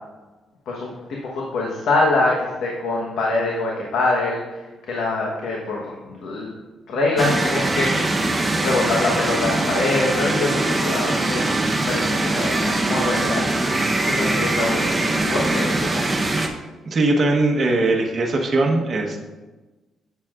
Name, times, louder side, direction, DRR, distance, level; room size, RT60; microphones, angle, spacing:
voice 1, 1.2-6.5 6.9-8.3 8.6-11.4 11.9-13.4 14.0-16.1, left 2 dB, 75° left, -2 dB, 1.1 m, -24 dB
sound 1, 7.2-16.5, right 2 dB, 20° right, 0.8 m, -22 dB
voice 2, 16.9-19.2, right 2 dB, 40° right, 1 dB, 1.0 m, -20 dB
7.9 x 7.2 x 2.4 m, 1.2 s
cardioid pair, 90°, 0 cm